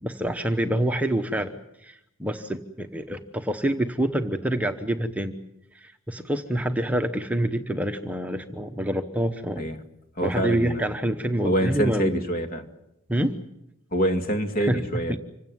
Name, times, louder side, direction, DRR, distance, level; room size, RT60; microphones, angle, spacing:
voice 1, 0.0-5.4 5.7-9.7 10.2-12.1 13.1-13.3 14.6-15.2, right 1 dB, 5° right, 6 dB, 1.0 m, -27 dB
voice 2, 10.2-10.9 11.4-12.7 13.9-15.2, equal, 45° left, 6 dB, 2.2 m, -26 dB
26.0 x 16.5 x 9.5 m, 0.85 s
head